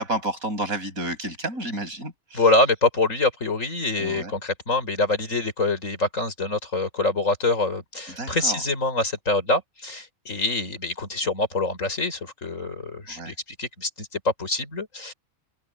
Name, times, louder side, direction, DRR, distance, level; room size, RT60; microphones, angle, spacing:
voice 1, 0.0-2.5 4.0-4.4 8.2-8.6 13.1-13.3, right 1 dB, 75° right, 8.7 m, -31 dB
voice 2, 2.3-15.1, left 2 dB, 65° left, 5.4 m, -25 dB
omnidirectional pair, 1.5 m